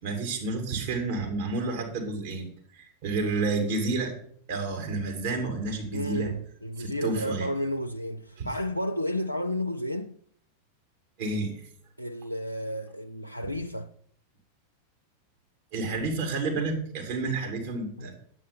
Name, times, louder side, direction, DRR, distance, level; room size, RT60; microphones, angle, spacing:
voice 1, 0.0-2.5 2.7-4.1 4.5-6.3 6.8-7.5 8.4-8.5 11.2-11.6 15.7-18.1, right 3 dB, 50° right, 2.8 m, -30 dB
voice 2, 5.9-10.2 12.0-13.9 18.0-18.1, left 1 dB, 90° left, 0.4 m, -32 dB
9.4 x 8.6 x 5.2 m
figure-of-eight pair, 90°, 0 cm